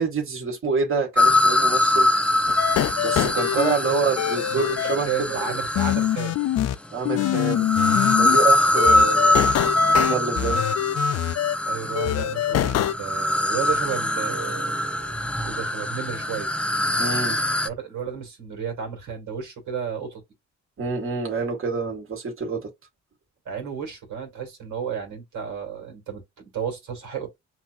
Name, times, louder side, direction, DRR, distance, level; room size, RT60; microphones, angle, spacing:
voice 1, 0.0-2.1 3.0-5.5 6.9-7.7 8.2-9.5 10.0-10.7 17.0-17.4 20.8-22.7, right 5 dB, 45° right, 1.9 m, -27 dB
sound 1, 1.2-6.4 7.2-17.7, left 1 dB, 5° left, 0.5 m, -23 dB
sound 2, 2.5-3.8 4.2-5.0 5.8-6.8 7.1-8.4 8.8-11.6 12.0-12.9, left 13 dB, 60° left, 0.4 m, -24 dB
voice 2, 4.2-4.6 5.1-6.4 11.6-15.2 15.4-16.5 17.6-20.2 23.5-27.3, right 7 dB, 75° right, 2.2 m, -33 dB
5.7 x 2.9 x 2.5 m
cardioid pair, 90°, 30 cm